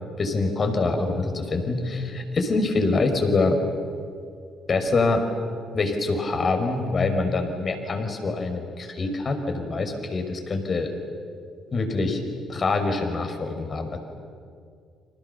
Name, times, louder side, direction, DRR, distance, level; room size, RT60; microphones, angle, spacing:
voice 1, 0.2-3.6 4.7-5.2 5.7-10.9 11.7-12.2 12.5-14.0, left 3 dB, 45° left, 5 dB, 5.6 m, -25 dB
30.0 x 26.5 x 7.0 m, 2.3 s
hypercardioid pair, 50°, 0 cm